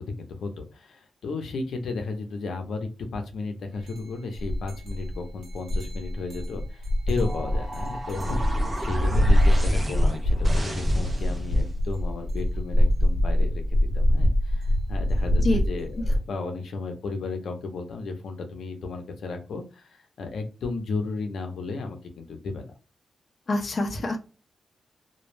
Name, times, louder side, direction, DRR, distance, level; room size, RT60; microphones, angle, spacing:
voice 1, 0.0-22.7, left 3 dB, 85° left, 5 dB, 0.6 m, -34 dB
sound 1, 3.9-4.0 4.3-16.2, left 1 dB, 65° right, 0.9 m, -24 dB
sound 2, 7.2-11.7, right 1 dB, 20° right, 0.5 m, -33 dB
voice 2, 23.5-24.2, left 2 dB, 35° left, 2 dB, 0.5 m, -25 dB
2.2 x 2.1 x 3.1 m, 0.33 s
wide cardioid pair, 165°, 0 cm